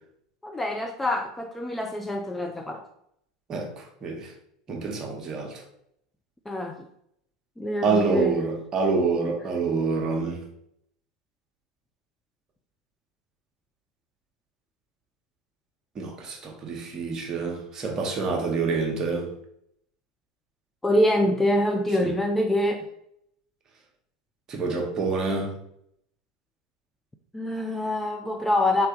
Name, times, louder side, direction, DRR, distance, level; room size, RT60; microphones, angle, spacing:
voice 1, 0.4-2.8 6.5-6.8 7.6-8.4 20.8-22.8 27.3-28.9, left 1 dB, 10° left, 4 dB, 0.3 m, -25 dB
voice 2, 3.5-4.3 4.7-5.6 7.8-10.4 16.0-19.3 22.0-22.1 24.5-25.5, right 4 dB, 30° right, 1 dB, 0.9 m, -27 dB
3.8 x 3.3 x 3.5 m, 0.73 s
figure-of-eight pair, 80°, 2 cm